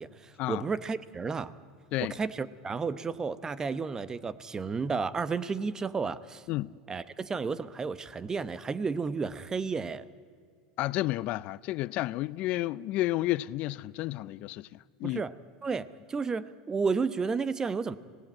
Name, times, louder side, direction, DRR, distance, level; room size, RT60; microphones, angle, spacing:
voice 1, 0.0-1.5 2.0-6.4 6.9-10.0 15.0-15.3 15.6-18.0, right 5 dB, 20° right, 0.9 m, -32 dB
voice 2, 10.8-14.7 15.0-15.2, left 17 dB, 55° left, 0.5 m, -31 dB
25.0 x 18.0 x 8.8 m
hypercardioid pair, 95°, 3 cm